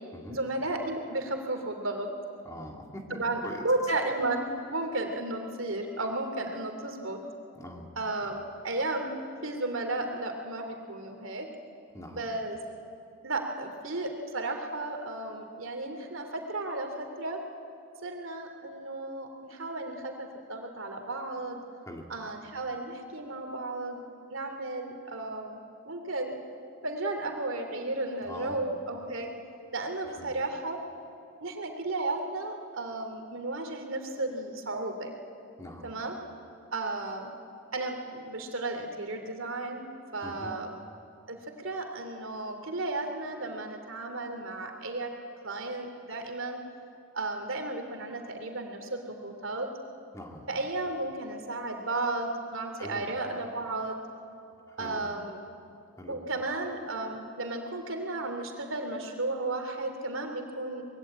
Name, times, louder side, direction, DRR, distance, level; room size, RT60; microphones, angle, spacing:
voice 1, 0.3-2.1 3.1-7.2 8.0-9.1 9.4-11.5 12.1-12.6 13.2-17.4 18.0-21.6 22.1-24.0 24.3-25.6 25.9-26.3 26.8-29.3 29.7-30.8 31.4-35.1 35.8-36.2 36.7-37.3 37.7-39.8 40.1-40.7 41.3-45.1 45.4-46.6 47.1-49.7 50.5-54.0 54.8-55.4 56.1-60.8, right 2 dB, 70° right, 4 dB, 2.8 m, -34 dB
voice 2, 2.4-3.6 7.6-7.9 11.9-12.3 21.9-22.1 28.2-28.6 30.2-30.3 35.6-35.9 40.2-40.5 50.1-50.5 52.8-53.1 54.7-55.1 56.0-56.2, left 1 dB, 15° left, 1 dB, 2.2 m, -43 dB
24.0 x 21.5 x 8.8 m, 2.5 s
head